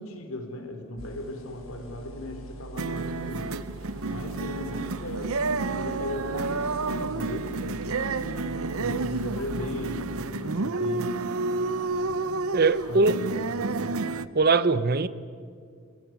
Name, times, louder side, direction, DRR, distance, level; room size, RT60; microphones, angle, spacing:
voice 1, 0.0-3.6 4.0-8.5 8.8-11.2 11.9-12.0 12.8-13.9, left 1 dB, 80° left, 3.8 m, -37 dB
sound 1, 1.0-9.5, right 2 dB, 65° left, 4.9 m, -43 dB
sound 2, 2.8-14.3, right 3 dB, 85° right, 0.8 m, -30 dB
voice 2, 12.5-13.2 14.3-15.1, right 3 dB, 45° right, 0.8 m, -21 dB
27.5 x 15.5 x 9.4 m
head